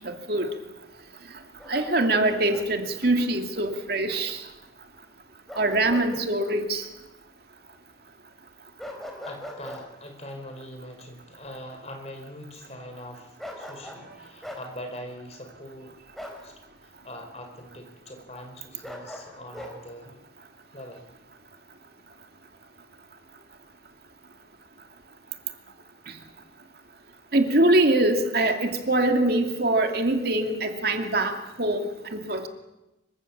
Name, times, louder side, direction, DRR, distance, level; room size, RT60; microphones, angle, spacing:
Bark, 1.6-2.7 5.5-6.1 6.4-6.6 8.8-9.8 13.4-14.1 14.4-14.7 16.2-16.4 18.8-19.7, left 1 dB, ahead, 4.3 m, -40 dB
voice 1, 1.7-4.4 5.6-6.8 27.3-31.8 32.1-32.5, right 1 dB, 60° right, 4 dB, 2.6 m, -23 dB
voice 2, 9.2-16.0 16.4-16.5 16.8-20.2 20.7-21.0, left 1 dB, 35° left, 4 dB, 4.7 m, -42 dB
25.5 x 24.5 x 7.4 m, 0.98 s
head